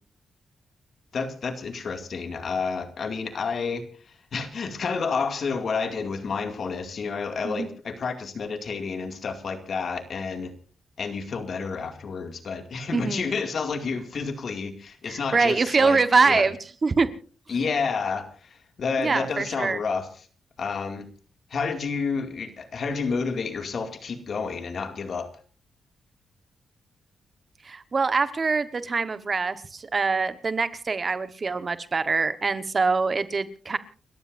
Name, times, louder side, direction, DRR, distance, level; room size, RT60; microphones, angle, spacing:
voice 1, 1.1-10.5 11.0-16.5 17.5-20.1 20.6-21.1 21.5-25.3, left 5 dB, 55° left, 6 dB, 2.3 m, -30 dB
voice 2, 12.9-13.2 15.1-16.6 16.8-17.1 19.0-19.8 27.6-33.8, right 4 dB, 40° right, 11 dB, 1.3 m, -24 dB
30.0 x 14.0 x 2.6 m, 0.38 s
cardioid pair, 95°, 0 cm